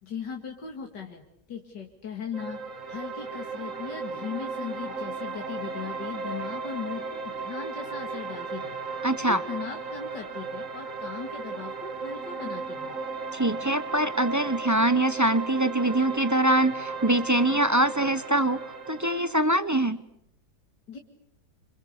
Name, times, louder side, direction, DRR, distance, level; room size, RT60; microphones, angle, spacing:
voice 1, 0.0-1.2 1.5-2.6 2.9-8.7 9.2-12.9 20.9-21.0, left 7 dB, 90° left, 1 dB, 2.9 m, -38 dB
sound 1, 2.3-19.3, right 4 dB, 50° right, 2.4 m, -35 dB
voice 2, 9.0-9.4 13.3-18.6 18.9-20.0, right 1 dB, 15° right, 12 dB, 0.7 m, -24 dB
27.5 x 27.0 x 6.8 m, 0.75 s
omnidirectional pair, 1.8 m